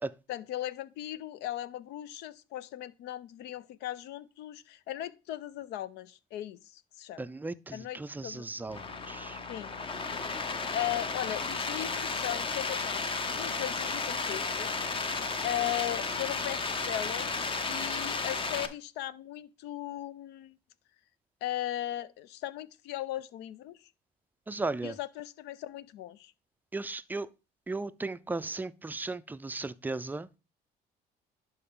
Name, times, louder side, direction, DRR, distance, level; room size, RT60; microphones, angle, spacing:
voice 1, 0.3-7.2 7.7-8.4 9.5-9.7 10.7-14.7 15.4-17.3 17.6-20.6 21.4-23.9 24.8-26.3, left 13 dB, 85° left, 0.5 m, -37 dB
voice 2, 7.2-9.4 24.5-25.0 26.7-27.3 27.7-30.3, right 3 dB, 10° right, 0.4 m, -36 dB
sound 1, 8.7-18.7, left 4 dB, 30° left, 0.8 m, -33 dB
11.0 x 4.6 x 3.7 m
cardioid pair, 110°, 17 cm